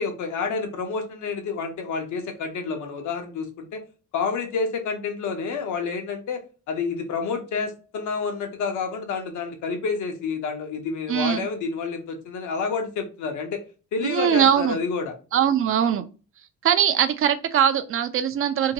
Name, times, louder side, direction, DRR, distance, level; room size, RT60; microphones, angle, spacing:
voice 1, 0.0-3.8 4.1-6.4 6.7-13.6 13.9-15.1, left 5 dB, 75° left, 0.8 m, -29 dB
voice 2, 11.1-11.5 14.0-14.8 15.3-16.0 16.6-18.7, right 9 dB, 45° right, 0.4 m, -21 dB
2.7 x 2.2 x 2.7 m
cardioid pair, 90°, 30 cm